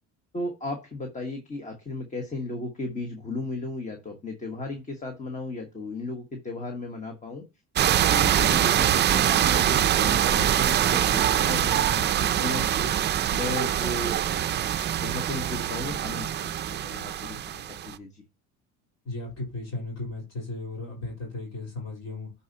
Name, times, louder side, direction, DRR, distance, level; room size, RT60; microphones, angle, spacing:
voice 1, 0.3-7.4 7.8-12.9 13.3-14.2 15.0-18.2, left 2 dB, 20° left, 1.2 m, -35 dB
sound 1, 7.8-17.9, right 10 dB, 35° right, 0.4 m, -24 dB
voice 2, 19.0-22.3, left 2 dB, 50° left, 3.7 m, -35 dB
10.5 x 4.1 x 2.8 m
cardioid pair, 125°, 33 cm